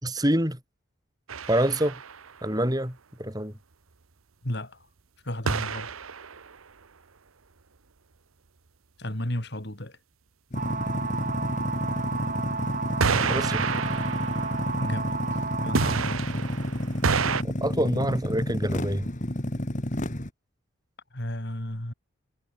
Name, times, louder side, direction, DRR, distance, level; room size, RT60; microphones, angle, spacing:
voice 1, 0.0-0.6 1.5-2.0 2.4-3.6 13.1-13.6 17.4-19.1, right 1 dB, 20° right, 5.4 m, -26 dB
sound 1, 1.3-2.3 5.5-6.6 13.0-15.3 15.7-17.4, right 5 dB, 85° right, 1.1 m, -29 dB
voice 2, 4.4-4.9 5.2-5.9 9.0-10.0 14.7-16.5 21.1-21.9, left 1 dB, 50° left, 3.5 m, -34 dB
sound 2, 10.5-20.3, left 1 dB, 35° left, 2.2 m, -30 dB
sound 3, 10.5-16.0, right 4 dB, 40° right, 2.6 m, -32 dB
head